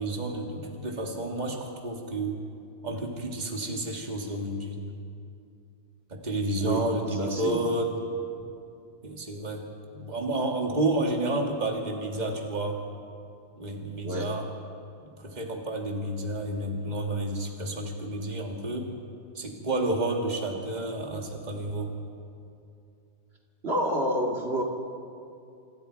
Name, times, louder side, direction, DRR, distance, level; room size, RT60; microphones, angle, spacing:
voice 1, 0.0-2.4 2.8-4.8 6.1-8.0 9.0-9.7 9.9-12.8 13.6-14.5 15.2-18.9 19.3-21.9, right 1 dB, 40° right, 1 dB, 2.3 m, -30 dB
voice 2, 7.2-7.6 14.0-14.3 23.6-24.6, right 1 dB, 65° right, 0 dB, 2.6 m, -28 dB
27.5 x 24.0 x 4.6 m, 2.5 s
omnidirectional pair, 1.2 m